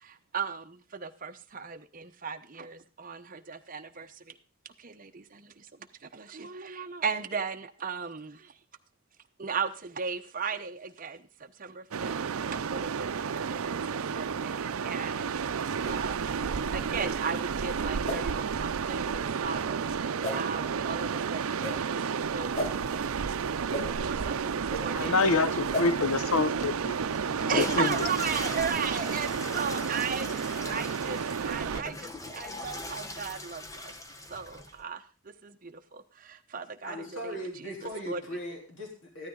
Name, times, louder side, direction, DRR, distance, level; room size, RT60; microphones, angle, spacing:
voice 1, 0.0-4.1 4.8-5.6 6.1-8.5 9.4-11.2 11.6-12.2 12.5-15.6 15.9-16.3 16.7-23.0 24.0-25.1 27.5-33.9 34.3-35.0 35.4-37.1 38.1-38.2, right 6 dB, 40° right, 7 dB, 0.9 m, -36 dB
sound 1, 11.9-31.8, right 6 dB, 85° right, 0.5 m, -31 dB
sound 2, 15.8-16.0 16.9-17.1 18.0-18.2 19.0-19.2 20.2-20.4 21.6-21.8 22.5-22.7 23.7-23.8 24.7-24.8 25.7-25.9, left 1 dB, 35° left, 4.2 m, -33 dB
voice 2, 24.9-27.0 27.4-28.1, left 4 dB, 85° left, 12 dB, 0.9 m, -27 dB
Water / Toilet flush, 26.5-34.8, left 2 dB, 15° left, 1.0 m, -40 dB
voice 3, 36.8-39.3, equal, 65° left, 0 dB, 3.7 m, -38 dB
14.5 x 12.5 x 3.8 m, 0.35 s
head